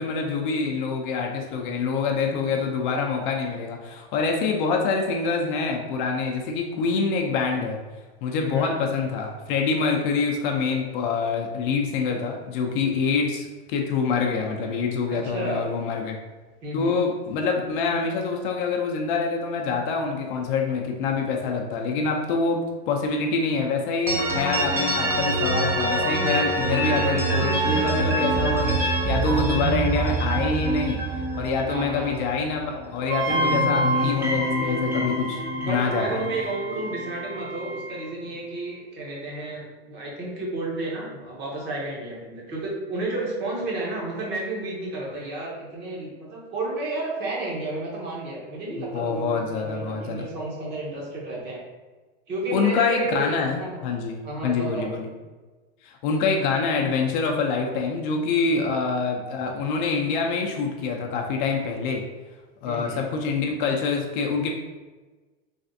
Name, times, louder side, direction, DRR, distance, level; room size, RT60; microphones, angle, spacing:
voice 1, 0.0-7.8 8.2-16.2 16.7-22.6 22.9-31.0 31.4-36.2 48.8-50.3 52.5-55.1 55.8-62.0 62.6-64.5, left 4 dB, 50° left, 1 dB, 0.5 m, -26 dB
voice 2, 8.3-8.7 15.1-15.6 16.6-17.0 31.7-32.1 35.6-51.6 52.3-53.2 53.6-53.8 54.2-54.9 58.6-58.8 62.6-63.1, right 2 dB, 35° right, -3 dB, 0.9 m, -31 dB
sound 1, 24.1-32.8 33.1-37.2, right 2 dB, 10° right, 0.4 m, -26 dB
Wind instrument woodwind instrument, 33.1-38.1, right 1 dB, 60° right, 0.6 m, -30 dB
3.3 x 2.4 x 2.6 m, 1.3 s
supercardioid pair, 130°, 32 cm